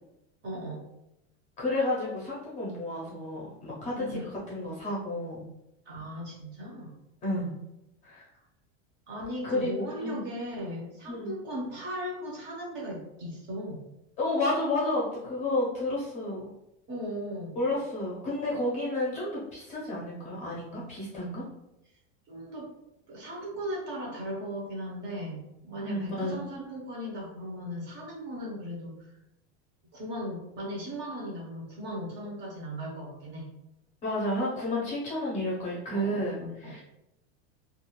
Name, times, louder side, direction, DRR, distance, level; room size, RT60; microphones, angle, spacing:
voice 1, 0.4-0.9 3.9-4.2 5.9-6.9 8.2-8.4 9.1-13.8 16.9-17.6 22.3-22.7 23.1-29.2 29.9-33.5 35.9-36.8, equal, 30° right, -3 dB, 0.7 m, -37 dB
voice 2, 1.6-5.4 7.2-7.5 8.0-8.3 9.4-10.3 11.1-11.3 14.2-16.5 17.6-21.4 25.8-26.3 34.0-36.8, left 1 dB, 20° left, -5 dB, 0.6 m, -31 dB
2.4 x 2.4 x 3.0 m, 0.88 s
supercardioid pair, 165°, 34 cm